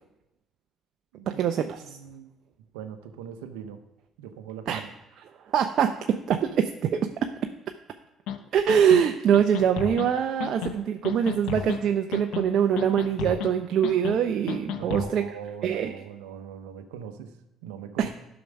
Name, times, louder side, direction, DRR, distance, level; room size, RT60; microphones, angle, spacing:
voice 1, 1.3-1.8 4.7-4.8 5.5-7.3 8.5-15.2 15.6-15.9 18.0-18.1, right 8 dB, 60° right, 6 dB, 0.6 m, -23 dB
voice 2, 1.8-2.3 2.7-3.8 4.2-4.9 14.7-17.4 17.6-18.1, right 8 dB, 80° right, 9 dB, 0.8 m, -41 dB
sound 1, 8.3-8.4 8.7-9.0 9.3-10.1 10.4-10.7 11.0-11.8 12.1-12.5 12.8-13.5 13.8-14.2 14.5-15.1, left 8 dB, 70° left, 0.7 m, -32 dB
11.0 x 6.0 x 5.3 m, 0.93 s
hypercardioid pair, 55°, 0 cm